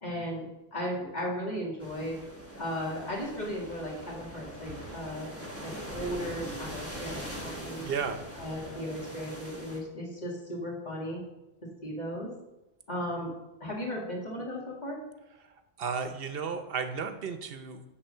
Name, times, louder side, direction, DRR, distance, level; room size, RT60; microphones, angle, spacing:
voice 1, 0.0-2.2 2.6-7.9 8.4-11.2 11.8-12.3 12.9-13.3 13.6-15.0, equal, 45° left, -2 dB, 2.2 m, -36 dB
sound 1, 1.8-9.8, equal, 15° left, 1.3 m, -42 dB
voice 2, 7.8-8.2 15.4-17.8, right 6 dB, 70° right, 8 dB, 0.9 m, -34 dB
10.5 x 3.8 x 6.5 m, 0.97 s
omnidirectional pair, 1.0 m